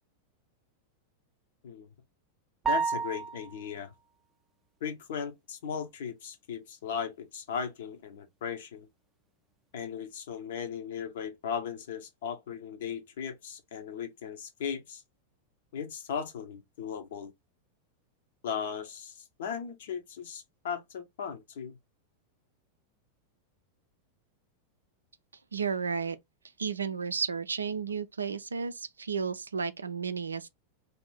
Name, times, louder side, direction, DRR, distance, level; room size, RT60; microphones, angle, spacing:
sound 1, 2.6-3.7, right 5 dB, 15° right, 0.5 m, -30 dB
voice 1, 2.7-3.9 4.8-8.9 9.7-15.0 15.7-17.3 18.4-21.8, left 7 dB, 55° left, 0.7 m, -37 dB
voice 2, 25.5-26.2 26.6-30.5, right 5 dB, 75° right, 0.3 m, -33 dB
2.7 x 2.5 x 3.3 m
figure-of-eight pair, 90°, 0 cm